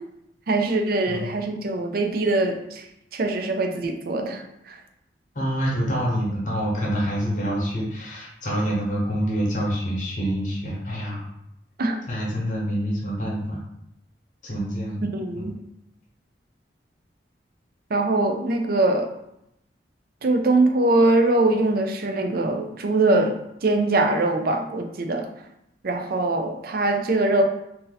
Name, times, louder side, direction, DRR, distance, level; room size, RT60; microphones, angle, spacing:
voice 1, 0.5-2.8 3.1-4.8 11.8-12.0 15.1-15.6 17.9-19.1 20.2-25.3 25.8-27.4, right 2 dB, 55° right, 4 dB, 0.5 m, -22 dB
voice 2, 1.1-1.4 5.3-11.3 12.1-13.6 14.4-15.0 15.3-15.4, equal, 45° left, -3 dB, 1.1 m, -26 dB
2.7 x 2.6 x 3.9 m, 0.81 s
head